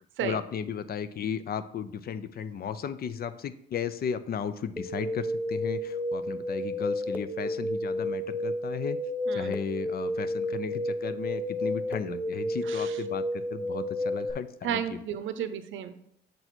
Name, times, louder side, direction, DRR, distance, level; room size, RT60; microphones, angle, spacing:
voice 1, 0.2-9.0 9.3-15.0, left 7 dB, 50° left, 13 dB, 0.5 m, -35 dB
sound 1, 4.8-14.3, left 1 dB, 10° right, 0.7 m, -31 dB
voice 2, 9.3-9.6 12.7-13.0 14.6-16.0, right 9 dB, 75° right, 10 dB, 0.7 m, -33 dB
6.8 x 4.1 x 4.4 m, 0.75 s
cardioid pair, 90°, 20 cm